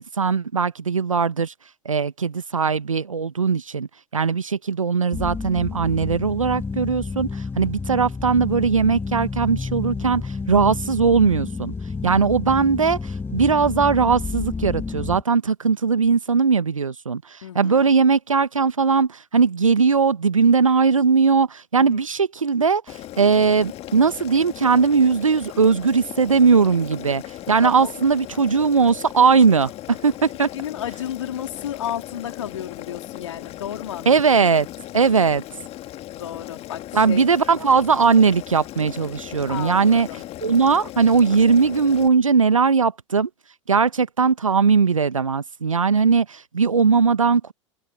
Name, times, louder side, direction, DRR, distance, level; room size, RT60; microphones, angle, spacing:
voice 1, 0.0-1.5 1.8-11.7 12.0-27.2 27.5-30.5 34.1-34.7 34.9-35.4 36.9-40.1 40.4-43.3 43.7-47.5, right 5 dB, 85° right, 1.3 m, -19 dB
sound 1, 5.1-15.2, left 4 dB, 15° left, 1.9 m, -30 dB
voice 2, 17.4-17.9 21.8-22.0 27.6-27.9 30.4-34.3 36.2-37.3 39.5-40.2, left 10 dB, 70° left, 3.8 m, -33 dB
Boiling, 22.9-42.1, left 14 dB, 40° left, 2.1 m, -38 dB
figure-of-eight pair, 85°, 17 cm